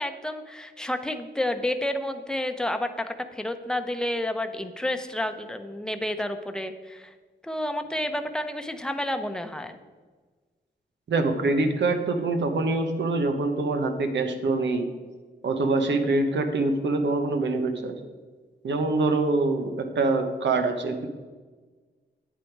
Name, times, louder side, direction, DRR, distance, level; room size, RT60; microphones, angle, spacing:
voice 1, 0.0-7.1 7.4-9.8, left 1 dB, 5° left, 7 dB, 0.8 m, -30 dB
voice 2, 11.1-14.9 15.4-17.9 18.6-21.1, right 3 dB, 85° right, 6 dB, 1.1 m, -25 dB
9.1 x 8.4 x 4.7 m, 1.4 s
cardioid pair, 80°, 18 cm